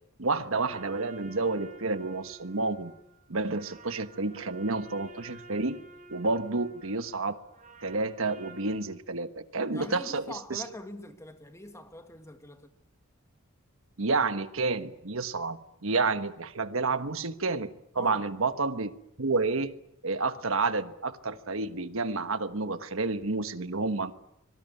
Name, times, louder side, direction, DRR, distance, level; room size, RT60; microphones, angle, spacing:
voice 1, 0.2-2.9 3.3-5.8 6.1-7.4 7.8-10.2 10.5-10.6 14.0-17.7 17.9-18.9 19.2-19.7 20.0-24.1, right 3 dB, 70° right, 1.3 m, -30 dB
sound 1, 0.6-8.8, right 3 dB, 40° right, 5.3 m, -50 dB
voice 2, 9.7-12.8 17.9-18.3, left 1 dB, 15° left, 1.9 m, -44 dB
25.0 x 18.5 x 9.4 m
head